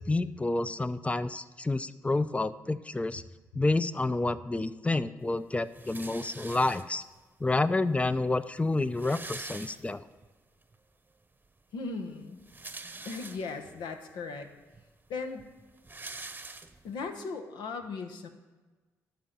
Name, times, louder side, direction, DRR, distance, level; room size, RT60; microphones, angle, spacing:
voice 1, 0.1-3.2 3.5-7.0 7.4-10.0, left 2 dB, 15° left, 15 dB, 0.5 m, -29 dB
sound 1, 5.7-7.2 8.0-8.1 8.3-8.4 8.7-10.3 10.7-10.8 12.2-13.7 14.4-14.5 14.7-17.1, right 3 dB, 25° right, 0.9 m, -44 dB
voice 2, 11.7-12.4 13.0-14.5 15.1-15.5 16.8-18.3, left 4 dB, 75° left, 6 dB, 1.0 m, -37 dB
12.0 x 4.4 x 7.4 m, 1.2 s
hypercardioid pair, 50°, 8 cm